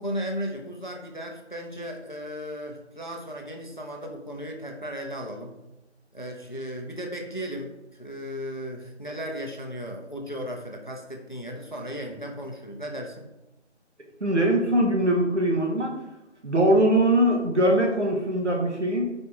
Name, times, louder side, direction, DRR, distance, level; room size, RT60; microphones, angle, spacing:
voice 1, 0.0-5.6 6.1-13.3, equal, 40° left, 2 dB, 0.5 m, -35 dB
voice 2, 14.2-15.9 16.4-19.0, right 1 dB, 70° right, 0 dB, 1.2 m, -22 dB
4.2 x 2.9 x 3.4 m, 0.96 s
figure-of-eight pair, 175°, 36 cm